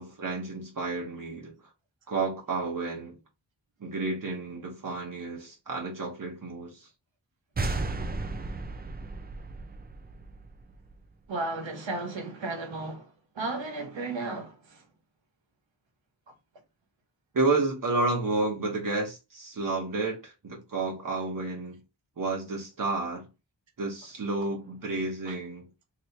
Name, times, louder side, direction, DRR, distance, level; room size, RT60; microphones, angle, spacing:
voice 1, 0.0-1.6 2.1-3.2 3.8-6.9 17.3-21.8 22.2-23.3 23.8-25.7, right 3 dB, 45° right, 1.0 m, -31 dB
sound 1, 7.6-11.0, right 3 dB, 25° right, 0.4 m, -34 dB
voice 2, 11.3-14.8 25.3-25.4, right 2 dB, 80° right, 1.3 m, -34 dB
3.0 x 2.9 x 3.1 m
wide cardioid pair, 145°, 44 cm